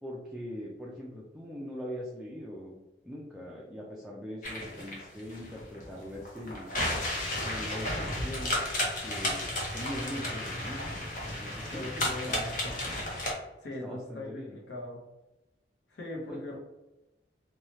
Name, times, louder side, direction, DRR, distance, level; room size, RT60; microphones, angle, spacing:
voice 1, 0.0-2.8 3.0-6.7 7.5-8.6 9.0-12.5 13.8-14.6 16.3-16.4, equal, ahead, -5 dB, 0.4 m, -41 dB
sound 1, 4.4-13.3, left 1 dB, 45° left, 0.7 m, -33 dB
voice 2, 11.7-13.0 13.6-15.0 15.9-16.6, left 1 dB, 85° left, 0 dB, 0.8 m, -40 dB
2.9 x 2.3 x 3.1 m, 1.0 s
head